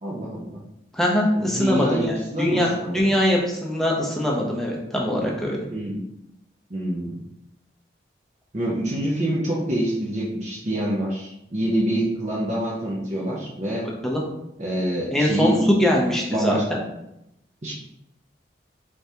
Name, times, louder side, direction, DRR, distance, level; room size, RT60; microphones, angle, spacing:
voice 1, 0.0-0.6 1.3-3.1 5.7-6.0 6.7-7.2 8.5-13.9 14.6-15.6 15.9-16.0 16.3-16.6 17.6-17.7, right 1 dB, 40° right, -5 dB, 0.7 m, -26 dB
voice 2, 0.9-5.6 14.0-14.2 15.1-15.5 15.8-16.8, left 1 dB, ahead, -3 dB, 0.7 m, -22 dB
4.7 x 3.4 x 2.8 m, 0.84 s
head